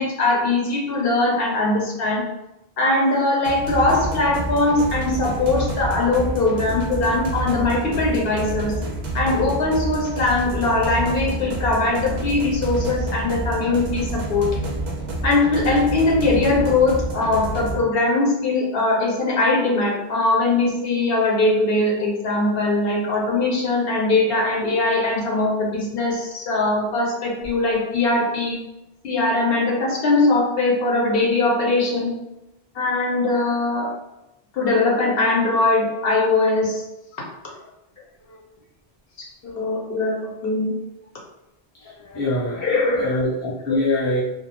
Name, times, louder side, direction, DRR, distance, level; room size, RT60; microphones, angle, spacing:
voice 1, 0.0-2.2 2.8-8.8 9.1-14.5 15.2-28.6 29.0-32.1 32.7-33.9 34.5-36.8 39.2-40.7 42.6-43.1 43.7-43.8, left 2 dB, 70° left, -2 dB, 0.7 m, -21 dB
sound 1, 3.4-17.8, right 1 dB, 55° right, 0.6 m, -28 dB
voice 2, 41.8-44.2, left 1 dB, 20° left, -6 dB, 0.6 m, -25 dB
2.3 x 2.1 x 2.8 m, 0.93 s
omnidirectional pair, 1.1 m